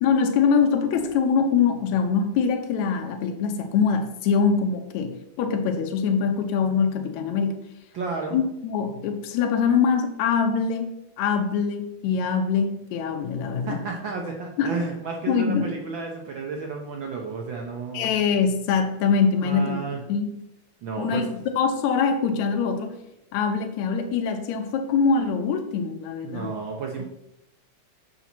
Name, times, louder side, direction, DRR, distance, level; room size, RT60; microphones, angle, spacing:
voice 1, 0.0-7.6 8.3-13.8 14.6-14.8 15.3-15.7 17.9-19.8 20.1-20.3 21.0-21.3 21.6-23.0 23.3-26.5, left 6 dB, 80° left, 5 dB, 2.1 m, -23 dB
voice 2, 7.9-8.4 13.7-18.1 19.4-20.0 20.8-21.3 26.2-27.0, right 4 dB, 75° right, 1 dB, 1.1 m, -32 dB
7.0 x 6.9 x 4.4 m, 0.84 s
omnidirectional pair, 3.3 m